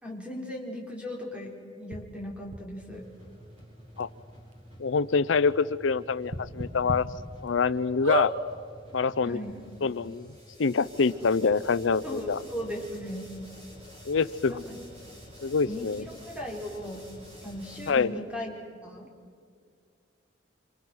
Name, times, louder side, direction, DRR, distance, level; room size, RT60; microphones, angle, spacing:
voice 1, 0.0-3.0 9.2-9.6 12.0-13.3 14.5-14.8 15.6-17.0 17.4-18.6 18.8-19.1, equal, 5° right, -1 dB, 4.6 m, -37 dB
sound 1, 1.9-2.0 2.5-2.6 3.6-3.7 4.0-4.1 4.5-4.6 6.3-7.0 7.5-7.6 8.0-8.3 9.2-9.3 9.4-9.5, right 2 dB, 70° right, 2.3 m, -30 dB
sound 2, 2.8-17.9, equal, 35° right, 7.9 m, -49 dB
voice 2, 4.8-7.1 7.4-8.3 8.9-9.4 9.8-10.3 10.6-12.4 14.1-14.6 15.4-16.1 17.9-18.1, left 5 dB, 75° left, 15 dB, 0.6 m, -25 dB
28.0 x 26.5 x 6.3 m, 2.2 s
head